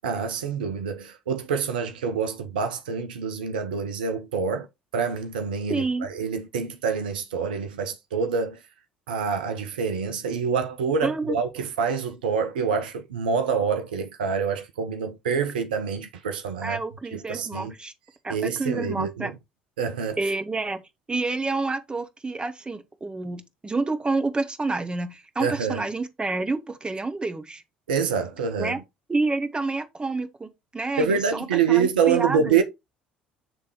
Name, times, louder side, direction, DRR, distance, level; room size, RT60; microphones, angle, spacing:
voice 1, 0.0-4.7 4.9-8.6 9.1-16.8 17.1-17.7 18.3-19.3 19.8-20.2 25.4-25.8 27.9-28.7 31.0-32.6, right 6 dB, 70° right, 0.6 m, -26 dB
voice 2, 5.7-6.1 11.0-11.4 16.6-17.9 18.2-19.3 20.2-20.8 21.1-27.6 28.6-28.8 29.1-32.6, right 3 dB, 20° right, 1.2 m, -29 dB
8.1 x 3.4 x 4.5 m
figure-of-eight pair, 60°, 5 cm